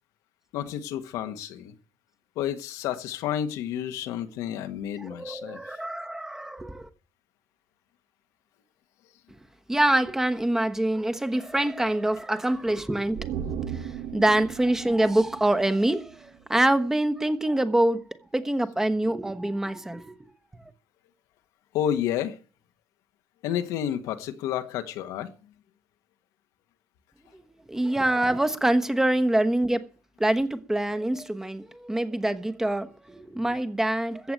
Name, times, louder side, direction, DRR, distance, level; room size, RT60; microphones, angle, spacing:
voice 1, 0.5-1.7 2.4-5.6 21.7-22.4 23.4-25.3, left 10 dB, 80° left, 1.5 m, -30 dB
voice 2, 5.0-6.9 9.7-18.0 18.3-20.2 27.3-29.8 30.2-34.3, right 1 dB, 10° right, 1.1 m, -25 dB
sound 1, 13.2-16.6 16.9-17.0, right 8 dB, 85° right, 1.7 m, -37 dB
14.5 x 7.9 x 8.9 m
cardioid pair, 145°, 6 cm